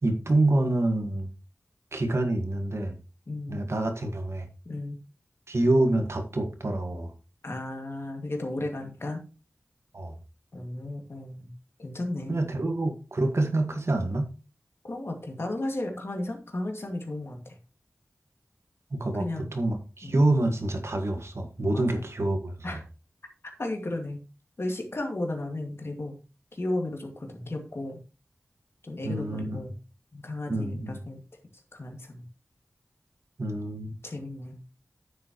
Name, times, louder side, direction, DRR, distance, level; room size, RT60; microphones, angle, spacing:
voice 1, 0.0-1.3 1.9-3.0 3.5-4.5 5.5-7.1 9.9-10.1 12.3-14.3 18.9-22.8 29.0-29.6 30.5-31.0 33.4-33.9, right 2 dB, 65° right, 5 dB, 1.7 m, -27 dB
voice 2, 3.3-3.6 4.7-5.0 7.4-9.2 10.5-11.5 11.8-12.4 14.8-17.6 19.2-19.5 20.0-20.1 21.7-22.0 22.6-22.8 23.6-24.2 24.6-26.1 26.5-28.0 28.8-29.8 30.1-31.2 31.7-32.2 34.0-34.6, left 1 dB, 55° left, 3 dB, 2.2 m, -34 dB
9.7 x 7.7 x 3.1 m, 0.33 s
wide cardioid pair, 65°, 5 cm